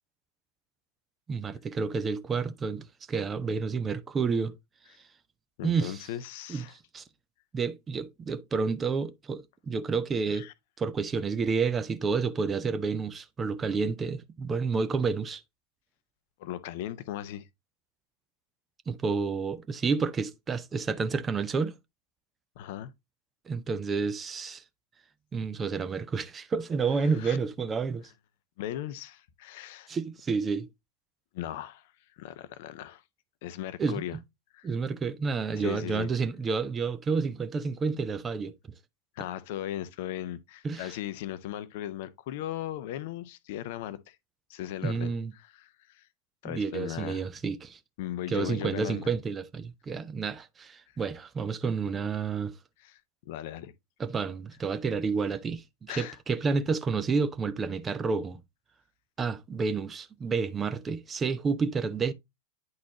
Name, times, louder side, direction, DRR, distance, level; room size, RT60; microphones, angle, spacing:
voice 1, 1.3-4.5 5.6-6.0 6.5-7.0 7.5-10.5 10.8-15.4 18.9-21.7 23.5-24.6 25.3-28.1 29.9-30.7 33.8-34.0 34.6-38.5 40.6-40.9 44.8-45.3 46.4-47.8 48.3-52.5 54.0-58.4 59.2-62.1, right 5 dB, 20° right, 0.6 m, -30 dB
voice 2, 5.6-6.8 10.3-10.5 16.4-17.5 22.6-22.9 27.0-27.4 28.6-29.9 31.3-33.0 33.4-34.2 34.5-34.7 35.6-36.1 39.2-44.2 44.5-46.1 46.4-47.3 48.0-49.1 52.8-53.0 53.3-53.7 55.9-56.2, left 12 dB, 50° left, 0.6 m, -38 dB
9.5 x 4.0 x 2.9 m
figure-of-eight pair, 90°, 0 cm